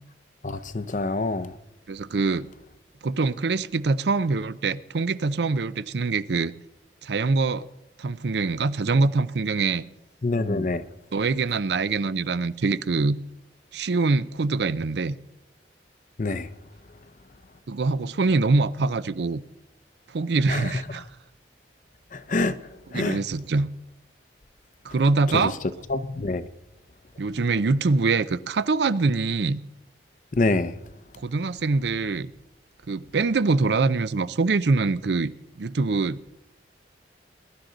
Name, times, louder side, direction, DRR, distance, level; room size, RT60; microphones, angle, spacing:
voice 1, 0.4-1.5 10.2-10.8 16.2-16.5 20.5-20.6 22.1-22.5 22.9-23.2 25.9-26.5 30.3-30.7, left 2 dB, 45° left, 0.6 m, -25 dB
voice 2, 1.9-2.5 3.0-6.5 7.0-7.7 8.0-9.8 11.1-13.2 13.7-15.1 17.7-19.4 20.1-21.0 22.9-23.7 24.8-25.6 27.2-29.6 31.2-32.3 32.9-35.3 35.6-36.3, right 3 dB, 70° right, 0.5 m, -24 dB
21.0 x 11.5 x 3.9 m
head